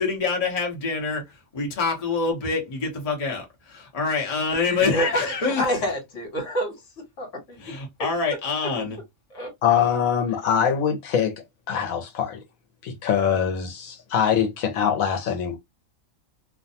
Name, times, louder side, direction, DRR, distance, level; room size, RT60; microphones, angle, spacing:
voice 1, 0.0-5.6 7.6-9.0, left 4 dB, 30° left, 0.8 m, -26 dB
voice 2, 4.6-6.7 7.2-7.6 9.3-9.5, equal, 65° left, 1.4 m, -27 dB
voice 3, 9.6-12.4 12.8-15.6, left 8 dB, 80° left, 1.1 m, -23 dB
2.5 x 2.2 x 2.6 m
omnidirectional pair, 1.4 m